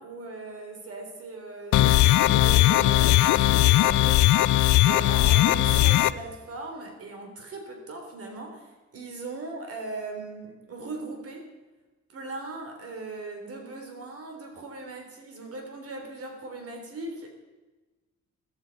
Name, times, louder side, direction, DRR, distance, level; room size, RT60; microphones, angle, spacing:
voice 1, 0.0-4.6 4.8-11.5 12.1-17.3, right 3 dB, 50° right, 3 dB, 3.6 m, -39 dB
sound 1, 1.7-6.1, left 15 dB, 85° left, 0.6 m, -19 dB
15.5 x 13.5 x 5.4 m, 1.2 s
cardioid pair, 165°, 29 cm